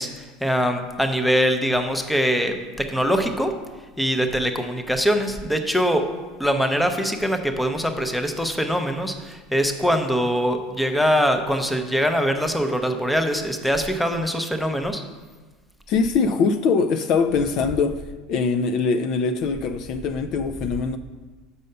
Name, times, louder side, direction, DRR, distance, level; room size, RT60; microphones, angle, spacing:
voice 1, 0.0-3.5 4.0-6.0 6.4-15.0, equal, ahead, 0.6 m, -23 dB
voice 2, 15.9-18.0 18.3-21.0, left 5 dB, 45° left, 0.3 m, -22 dB
5.5 x 5.4 x 6.6 m
supercardioid pair, 145°, 0 cm